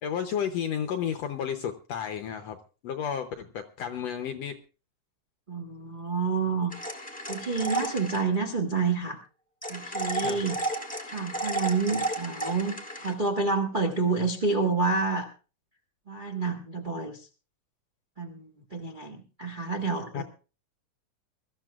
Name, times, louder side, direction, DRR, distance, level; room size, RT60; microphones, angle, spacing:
voice 1, 0.0-2.6 2.8-4.6 10.2-10.4 20.1-20.2, left 8 dB, 70° left, 6 dB, 1.6 m, -32 dB
voice 2, 5.5-6.7 7.3-9.2 9.7-10.6 11.1-15.3 16.1-17.2 18.2-20.2, right 4 dB, 45° right, 0 dB, 0.6 m, -28 dB
sound 1, 6.7-8.3 9.6-13.1, right 2 dB, 5° left, 0.6 m, -33 dB
23.5 x 13.5 x 2.4 m, 0.34 s
omnidirectional pair, 3.8 m